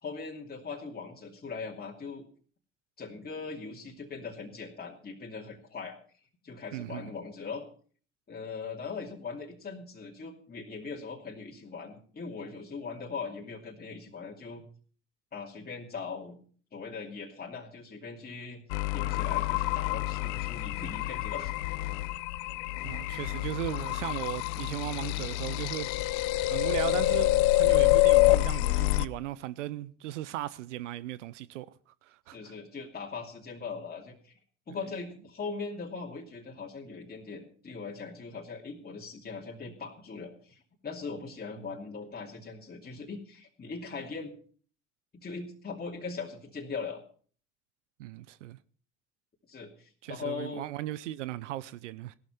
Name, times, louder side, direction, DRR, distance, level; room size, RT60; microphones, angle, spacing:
voice 1, 0.0-2.3 3.0-6.0 6.4-7.7 8.3-14.6 15.3-16.4 16.7-18.6 18.9-21.5 26.8-27.0 32.3-34.4 34.7-44.3 45.1-47.0 49.5-50.7, left 4 dB, 25° left, 2.7 m, -40 dB
voice 2, 6.7-7.1 22.8-25.9 26.5-31.7 32.0-32.5 41.6-41.7 48.0-48.6 50.0-52.1, right 15 dB, 75° right, 0.6 m, -37 dB
sound 1, 18.7-29.1, left 18 dB, 60° left, 0.7 m, -27 dB
16.5 x 12.5 x 4.4 m
hypercardioid pair, 65°, 36 cm